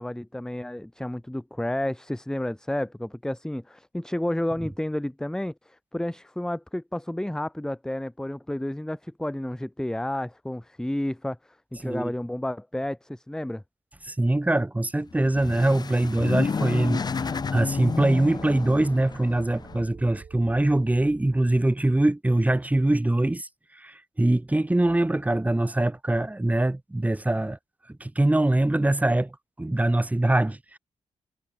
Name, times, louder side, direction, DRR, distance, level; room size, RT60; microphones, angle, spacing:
voice 1, 0.0-13.6, left 1 dB, 5° left, 1.0 m, -31 dB
voice 2, 14.1-23.5 23.7-27.6 28.0-30.8, right 1 dB, 10° right, 2.1 m, -23 dB
sound 1, 15.1-19.8, left 5 dB, 35° left, 0.6 m, -31 dB
sound 2, 16.7-21.7, right 6 dB, 50° right, 3.9 m, -47 dB
cardioid pair, 100°, 12 cm